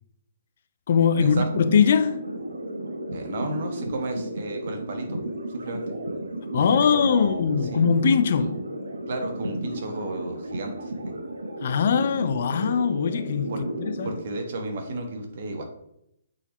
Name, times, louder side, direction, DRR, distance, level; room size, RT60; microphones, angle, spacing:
voice 1, 0.9-2.2 6.5-8.6 11.6-14.1, left 6 dB, 50° left, 0.5 m, -21 dB
sound 1, 1.1-14.2, right 1 dB, 75° right, 1.0 m, -33 dB
voice 2, 3.1-5.2 5.5-5.9 6.6-6.7 6.9-7.4 7.7-7.8 8.3-8.5 9.1-11.1 13.5-13.6 14.0-15.6, right 2 dB, 50° right, 1.3 m, -33 dB
8.1 x 4.0 x 3.0 m
figure-of-eight pair, 130°, 0 cm